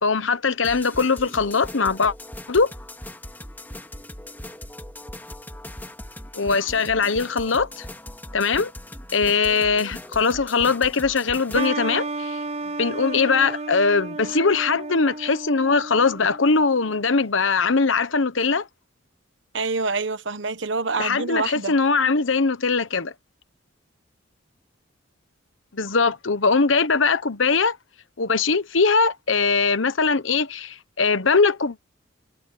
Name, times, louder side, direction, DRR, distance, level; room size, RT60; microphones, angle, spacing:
voice 1, 0.0-2.1 2.5-2.7 6.3-7.9 8.3-8.7 9.1-12.4 12.8-18.7 21.0-23.1 25.7-27.8 28.2-31.8, left 4 dB, 80° left, 1.1 m, -21 dB
sound 1, 0.6-11.7, left 1 dB, 10° left, 2.3 m, -39 dB
sound 2, 11.5-17.0, right 3 dB, 30° right, 0.7 m, -32 dB
voice 2, 19.5-21.8, right 3 dB, 70° right, 1.2 m, -26 dB
head